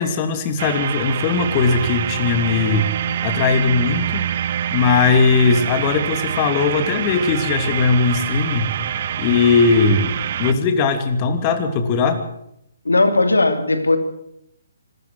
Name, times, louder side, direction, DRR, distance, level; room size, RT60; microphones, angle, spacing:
voice 1, 0.0-2.9 3.2-4.2 4.7-8.7 9.2-12.2, left 5 dB, 30° left, 8 dB, 2.9 m, -19 dB
sound 1, 0.6-10.5, right 9 dB, 45° right, 1.4 m, -25 dB
voice 2, 12.8-14.0, left 2 dB, 85° left, 10 dB, 2.8 m, -17 dB
26.0 x 13.5 x 7.9 m, 0.76 s
figure-of-eight pair, 135°, 0 cm